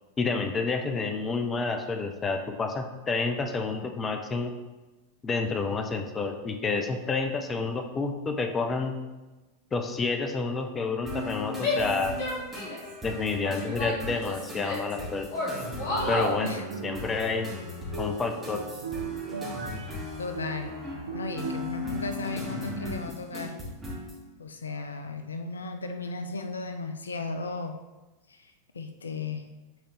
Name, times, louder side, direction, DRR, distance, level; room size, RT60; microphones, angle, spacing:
voice 1, 0.2-4.5 5.2-9.0 9.7-12.2 13.0-15.3 16.1-17.5 18.0-18.6, left 4 dB, 20° left, 5 dB, 0.7 m, -29 dB
sound 1, 11.0-24.2, left 2 dB, 10° right, 2.2 m, -38 dB
Female speech woman speaking / Yell, 11.6-12.9 13.4-14.9 15.3-16.4, left 2 dB, 50° left, 2.0 m, -31 dB
sound 2, 15.8-21.5, right 5 dB, 65° right, 0.6 m, -39 dB
voice 2, 20.2-20.8 21.1-23.6 24.4-27.8 28.3-29.5, left 3 dB, 75° left, 6 dB, 0.4 m, -35 dB
7.6 x 4.3 x 3.3 m, 1.2 s
figure-of-eight pair, 90°, 0 cm